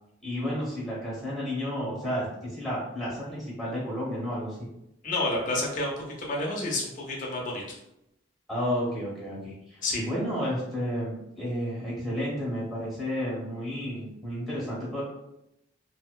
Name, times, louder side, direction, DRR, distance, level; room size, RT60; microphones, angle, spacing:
voice 1, 0.2-4.7 8.5-15.0, equal, ahead, -7 dB, 1.0 m, -32 dB
voice 2, 5.0-5.9 6.2-7.6 9.8-10.0, left 2 dB, 45° left, -2 dB, 0.6 m, -29 dB
2.7 x 2.0 x 2.2 m, 0.84 s
head